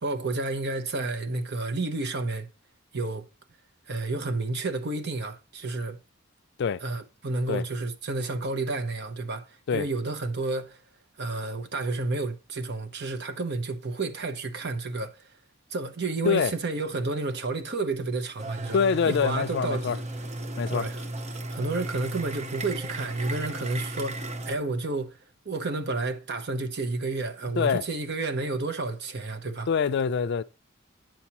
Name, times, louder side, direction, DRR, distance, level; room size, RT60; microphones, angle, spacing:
voice 1, 0.0-2.5 2.9-3.2 3.9-6.0 6.8-10.8 11.2-15.3 15.7-18.8 19.1-20.0 20.7-21.0 21.5-25.2 25.4-29.7, right 3 dB, 55° right, 0.9 m, -31 dB
sound 1, 18.4-24.5, right 1 dB, 35° right, 0.7 m, -35 dB
voice 2, 18.7-20.0 20.6-20.9 27.6-27.8 29.7-30.4, left 6 dB, 55° left, 0.4 m, -25 dB
8.9 x 7.1 x 2.9 m
head